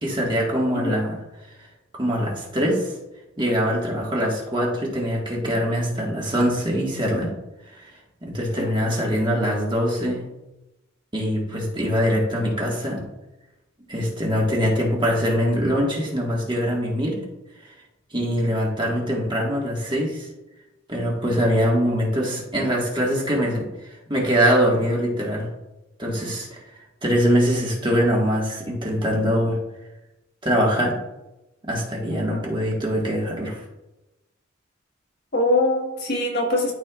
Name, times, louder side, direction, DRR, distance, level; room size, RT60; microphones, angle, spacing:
voice 1, 0.0-1.2 1.9-2.9 3.4-7.3 7.7-7.9 8.2-10.3 11.1-13.0 13.9-17.2 18.1-20.3 20.9-23.7 24.1-25.5 26.0-26.6 27.0-29.6 30.4-31.0 31.7-33.6, equal, 25° right, -2 dB, 1.7 m, -23 dB
voice 2, 35.3-36.7, left 1 dB, 55° left, -1 dB, 1.5 m, -23 dB
12.5 x 4.4 x 2.4 m, 0.97 s
head